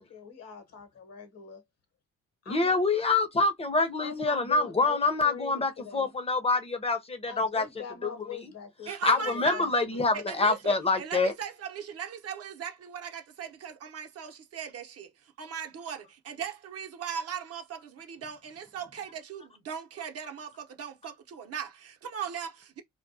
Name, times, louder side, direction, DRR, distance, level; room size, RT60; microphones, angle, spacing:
voice 1, 0.0-1.6 2.5-2.8 4.0-6.1 7.3-9.7, left 7 dB, 55° left, 0.9 m, -42 dB
voice 2, 2.5-7.7 8.0-8.1 9.0-11.3, left 3 dB, 20° left, 0.6 m, -26 dB
voice 3, 8.9-22.8, right 7 dB, 55° right, 0.7 m, -39 dB
2.2 x 2.2 x 2.6 m
cardioid pair, 90°, 30 cm